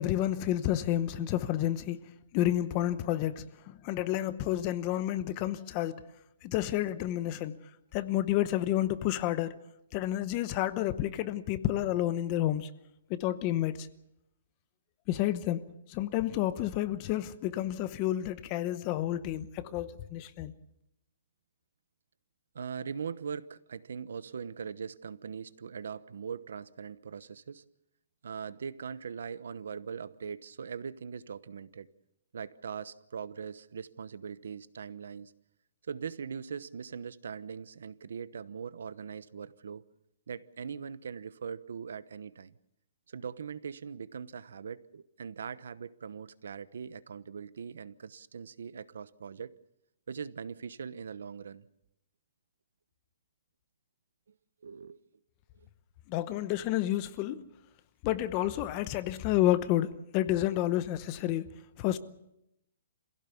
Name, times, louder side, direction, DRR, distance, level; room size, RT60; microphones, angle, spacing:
voice 1, 0.0-2.0 2.3-6.0 6.4-7.6 7.9-9.5 9.9-12.7 13.1-13.9 15.1-15.6 15.9-20.5 56.1-57.4 58.0-59.9 60.1-62.0, left 13 dB, 25° left, 0.8 m, -30 dB
voice 2, 19.6-20.0 22.5-27.6 28.2-31.9 32.3-35.3 35.9-39.9 40.3-42.6 43.1-49.5 50.1-51.7 54.6-55.0 55.6-55.7, right 6 dB, 80° right, 1.0 m, -41 dB
26.5 x 16.5 x 7.0 m
hypercardioid pair, 170°, 0 cm